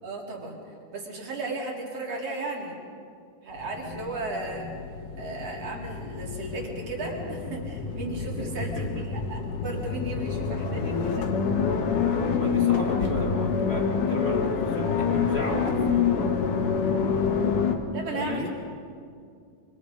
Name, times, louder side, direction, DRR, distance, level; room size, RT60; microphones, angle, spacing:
voice 1, 0.0-2.8 3.4-4.7 5.2-11.3 17.9-18.5, right 2 dB, 45° right, -1 dB, 4.3 m, -35 dB
sound 1, 3.6-17.8, left 6 dB, 65° left, 2.8 m, -27 dB
voice 2, 8.2-9.1 12.3-15.8 18.1-18.5, left 1 dB, 30° left, 1 dB, 1.2 m, -35 dB
25.5 x 25.0 x 5.3 m, 2.3 s
omnidirectional pair, 4.2 m